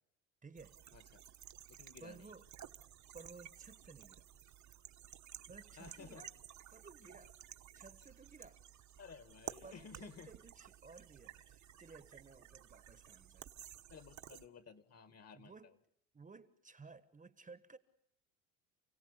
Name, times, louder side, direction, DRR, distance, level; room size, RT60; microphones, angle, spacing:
voice 1, 0.4-0.8 2.0-2.4 3.1-4.3 5.5-6.3 6.7-7.4 7.7-8.7 9.6-13.5 15.3-15.8 16.1-17.8, right 4 dB, 20° right, 1.4 m, -57 dB
sound 1, 0.6-14.5, right 10 dB, 45° right, 1.4 m, -54 dB
voice 2, 0.9-1.2 1.7-2.3 5.8-6.3 9.0-10.3 13.9-15.7, left 6 dB, 40° left, 1.9 m, -55 dB
29.5 x 17.0 x 8.3 m
supercardioid pair, 80°, 40 cm